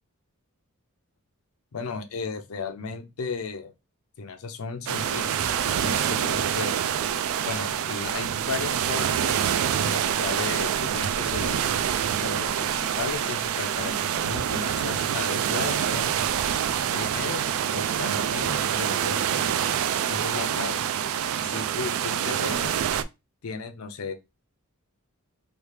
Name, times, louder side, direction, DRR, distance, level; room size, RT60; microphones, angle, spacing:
voice 1, 1.7-3.7 4.2-6.8 7.4-9.3 9.8-11.6 12.2-16.2 16.9-17.4 17.7-19.5 20.1-20.9 21.4-22.8 23.4-24.1, left 4 dB, 75° left, 0.5 m, -35 dB
sound 1, 4.9-23.0, right 9 dB, 70° right, 0.3 m, -26 dB
3.2 x 2.4 x 3.1 m
head